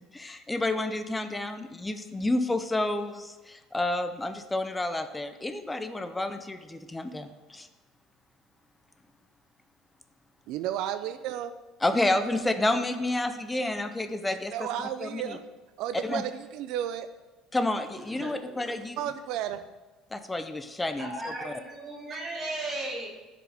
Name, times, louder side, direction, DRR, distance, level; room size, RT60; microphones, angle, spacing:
voice 1, 0.1-7.7 11.8-14.7 15.0-15.4 16.0-16.2 17.5-19.0 20.1-21.5, left 2 dB, 10° left, 9 dB, 0.4 m, -30 dB
voice 2, 10.5-11.5 14.5-15.4 15.8-17.1 19.0-19.6, right 10 dB, 55° right, 11 dB, 0.3 m, -32 dB
voice 3, 18.1-18.6 21.0-23.1, right 2 dB, 25° right, -2 dB, 1.7 m, -36 dB
14.0 x 4.9 x 3.4 m, 1.2 s
cardioid pair, 175°, 0 cm